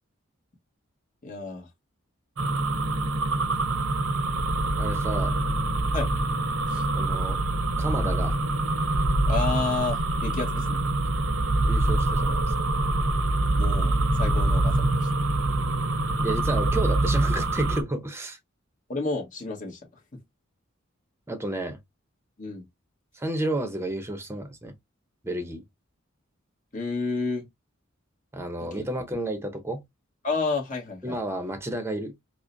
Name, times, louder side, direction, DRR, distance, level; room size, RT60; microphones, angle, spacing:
voice 1, 1.2-1.7 5.9-6.1 6.7-6.9 9.3-10.8 13.6-15.1 18.9-19.8 22.4-22.6 26.7-27.5 28.6-28.8 30.2-31.2, left 4 dB, 40° left, 1.2 m, -31 dB
sound 1, 2.4-17.8, right 2 dB, 85° right, 0.7 m, -25 dB
voice 2, 4.8-5.4 6.9-7.4 7.8-8.4 11.6-12.5 16.2-18.4 21.3-21.8 23.1-24.7 25.2-25.6 28.3-29.8 31.0-32.1, right 1 dB, 10° right, 0.7 m, -31 dB
4.8 x 2.1 x 2.5 m
head